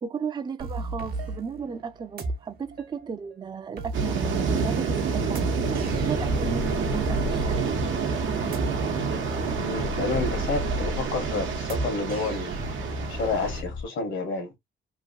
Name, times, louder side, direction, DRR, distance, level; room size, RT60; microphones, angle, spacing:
voice 1, 0.0-7.8, right 6 dB, 20° right, 0.4 m, -35 dB
sound 1, 0.6-13.3, right 2 dB, 50° right, 0.9 m, -36 dB
sound 2, 3.9-13.6, right 5 dB, 80° right, 0.8 m, -28 dB
sound 3, 5.6-13.8, left 5 dB, 45° left, 0.4 m, -36 dB
voice 2, 9.6-12.6 13.1-14.5, left 3 dB, 75° left, 1.2 m, -30 dB
2.9 x 2.5 x 2.5 m
cardioid pair, 90°, 20 cm